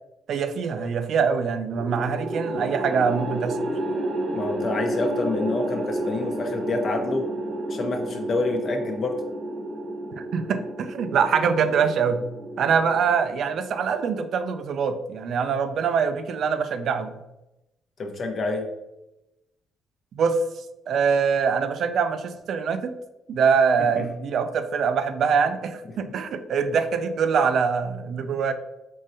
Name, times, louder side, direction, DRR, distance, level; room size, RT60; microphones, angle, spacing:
voice 1, 0.3-3.6 10.2-12.2 12.6-17.2 20.2-20.4 20.9-22.9 23.3-28.5, right 6 dB, 65° right, 9 dB, 0.3 m, -24 dB
sound 1, 1.8-14.1, right 1 dB, 90° right, 1.0 m, -31 dB
voice 2, 4.3-7.2 7.7-9.2 18.0-18.7 24.0-24.1, left 3 dB, 55° left, 3 dB, 0.7 m, -27 dB
3.7 x 3.1 x 2.6 m, 0.92 s
supercardioid pair, 65°, 0 cm